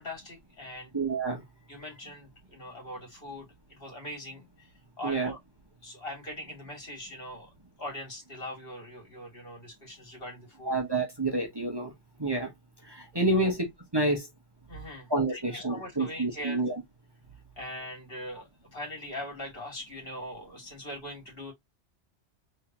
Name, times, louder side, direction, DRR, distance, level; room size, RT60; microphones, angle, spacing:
voice 1, 0.0-0.9 1.7-4.7 5.0-5.4 5.8-7.5 7.8-10.8 13.3-13.5 14.7-16.6 17.6-21.5, left 1 dB, 55° left, 2.5 m, -41 dB
voice 2, 0.9-1.4 1.8-1.9 5.0-5.3 10.6-11.9 12.2-12.5 12.8-13.6 13.9-14.3 15.1-16.8, right 2 dB, 20° right, 1.2 m, -28 dB
3.7 x 3.4 x 2.9 m
omnidirectional pair, 1.1 m